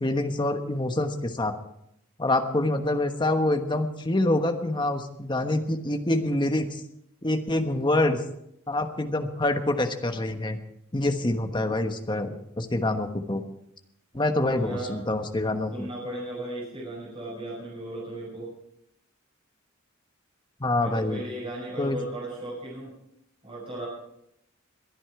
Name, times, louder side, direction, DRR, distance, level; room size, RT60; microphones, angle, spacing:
voice 1, 0.0-1.5 2.2-6.7 7.2-8.2 8.7-10.6 10.9-13.4 14.1-15.9 20.6-21.2 21.8-22.0, left 1 dB, 20° left, 6 dB, 1.2 m, -26 dB
voice 2, 14.6-15.0 15.7-18.5 20.8-22.9 23.4-23.9, right 1 dB, 25° right, -6 dB, 6.0 m, -36 dB
22.0 x 9.9 x 4.8 m, 0.78 s
head